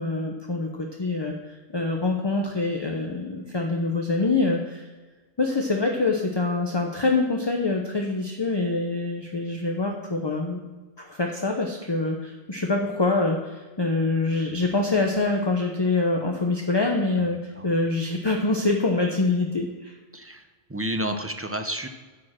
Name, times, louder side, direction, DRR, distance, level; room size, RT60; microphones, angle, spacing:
voice 1, 0.0-4.8 5.4-10.6 11.0-19.9, left 3 dB, 25° left, 2 dB, 0.8 m, -25 dB
voice 2, 20.1-21.9, right 1 dB, 15° right, 6 dB, 0.5 m, -31 dB
10.5 x 5.1 x 7.5 m, 1.3 s
omnidirectional pair, 1.2 m